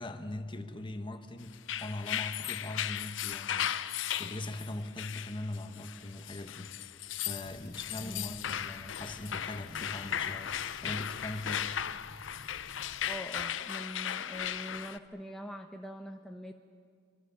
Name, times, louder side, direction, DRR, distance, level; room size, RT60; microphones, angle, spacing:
voice 1, 0.0-6.7 7.1-11.7, left 1 dB, 25° left, 7 dB, 1.4 m, -41 dB
sound 1, 1.5-15.0, left 10 dB, 90° left, 0.6 m, -37 dB
sound 2, 7.5-13.2, left 3 dB, 50° left, 0.7 m, -54 dB
voice 2, 13.1-16.5, equal, ahead, 2 dB, 0.9 m, -43 dB
25.5 x 24.0 x 7.2 m, 2.2 s
head